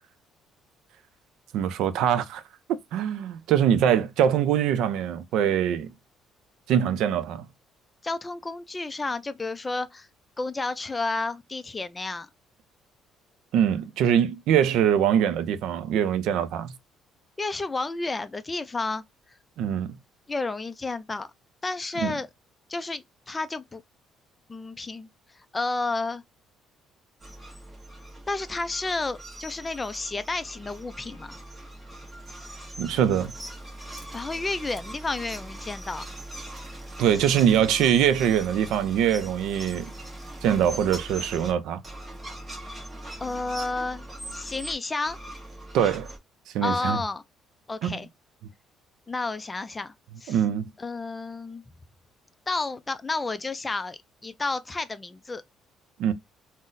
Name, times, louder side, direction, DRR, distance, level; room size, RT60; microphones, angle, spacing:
voice 1, 1.5-2.4 2.9-5.9 6.7-7.4 13.5-16.7 19.6-20.0 22.0-22.1 32.8-33.3 37.0-39.9 40.4-41.8 45.7-46.1 46.5-47.0 47.8-48.0 50.3-50.7 56.0-56.1, right 9 dB, 75° right, 0.4 m, -23 dB
voice 2, 8.0-10.1 10.4-12.3 17.4-19.0 20.3-21.3 21.6-22.3 22.7-23.8 24.5-25.1 25.5-26.2 28.3-31.4 34.1-36.0 43.2-44.1 44.3-45.2 46.6-47.2 47.7-48.1 49.1-49.9 50.2-50.4 50.8-51.6 52.5-55.4, left 3 dB, 15° left, 0.3 m, -31 dB
sound 1, 27.2-41.5 41.8-44.7 45.1-46.2, right 1 dB, 15° right, 1.0 m, -41 dB
3.8 x 2.0 x 2.5 m
cardioid pair, 130°, 0 cm